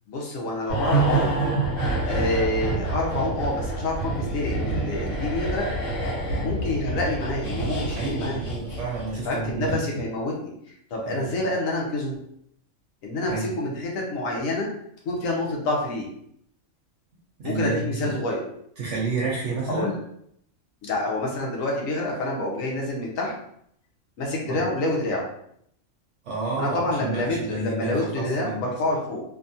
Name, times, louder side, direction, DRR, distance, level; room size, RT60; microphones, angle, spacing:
voice 1, 0.1-1.4 2.1-5.7 6.3-8.4 9.2-10.5 10.9-12.2 13.0-14.7 15.0-16.1 17.4-18.5 19.7-20.0 20.8-23.3 24.2-25.3 26.6-29.2, left 2 dB, 85° left, -2 dB, 1.1 m, -27 dB
sound 1, 0.7-9.2 9.5-9.7, right 2 dB, 70° left, 1.5 m, -27 dB
voice 2, 7.9-9.8 11.0-11.4 13.3-13.5 17.4-18.1 18.8-19.9 24.5-24.6 26.2-28.7, right 3 dB, 65° right, -4 dB, 0.9 m, -30 dB
2.7 x 2.3 x 2.6 m, 0.71 s
omnidirectional pair, 1.4 m